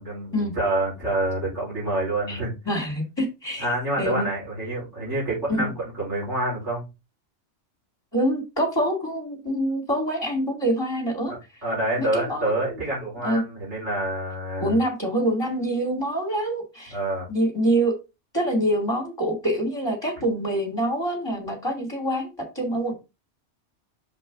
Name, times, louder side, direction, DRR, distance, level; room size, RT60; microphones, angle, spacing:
voice 1, 0.0-2.5 3.6-6.8 11.3-14.8 16.9-17.3, right 1 dB, 80° right, -6 dB, 4.8 m, -27 dB
voice 2, 2.7-3.7 4.0-4.3 5.6-5.7 8.1-11.3 12.0-12.7 13.2-13.4 14.6-17.0 17.3-18.0 18.3-22.9, right 1 dB, 20° left, 2 dB, 2.4 m, -25 dB
6.6 x 5.3 x 3.6 m, 0.26 s
omnidirectional pair, 1.2 m